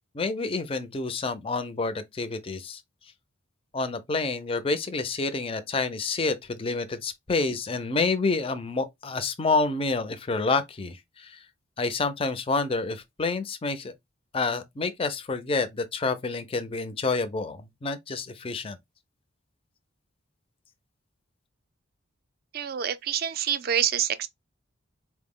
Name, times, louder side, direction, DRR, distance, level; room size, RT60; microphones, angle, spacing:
voice 1, 0.1-2.8 3.7-11.4 11.8-13.9 14.3-18.8, left 3 dB, 25° left, 0.4 m, -28 dB
voice 2, 22.5-24.3, right 9 dB, 45° right, 0.3 m, -27 dB
4.3 x 2.0 x 3.5 m
head